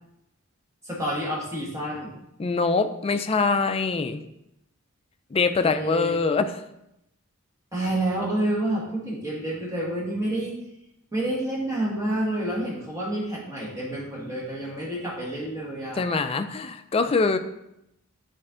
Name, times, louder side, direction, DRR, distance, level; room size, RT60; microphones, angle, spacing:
voice 1, 0.8-2.2 5.6-6.2 7.7-10.6 11.1-16.1, right 1 dB, 15° right, -4 dB, 1.7 m, -29 dB
voice 2, 2.4-4.2 5.3-6.6 16.0-17.4, left 4 dB, 25° left, 9 dB, 0.4 m, -24 dB
6.6 x 4.3 x 3.8 m, 0.82 s
head